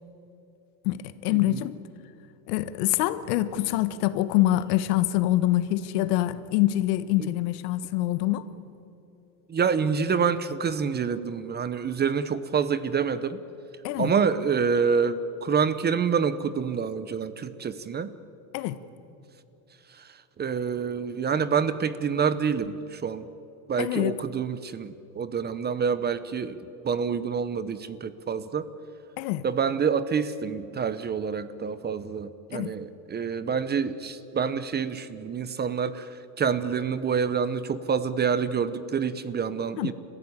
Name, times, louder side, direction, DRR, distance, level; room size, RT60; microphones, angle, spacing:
voice 1, 0.8-1.8 2.5-8.5 13.8-14.1 18.5-18.8 23.8-24.2 29.2-29.4 32.5-32.7 39.8-39.9, left 15 dB, 75° left, 1.4 m, -25 dB
voice 2, 9.5-13.4 14.0-18.1 20.4-23.3 23.7-26.6 26.8-28.7 29.4-36.1 36.4-39.9, right 6 dB, 20° right, 0.8 m, -27 dB
29.5 x 15.0 x 9.8 m
supercardioid pair, 140°, 47 cm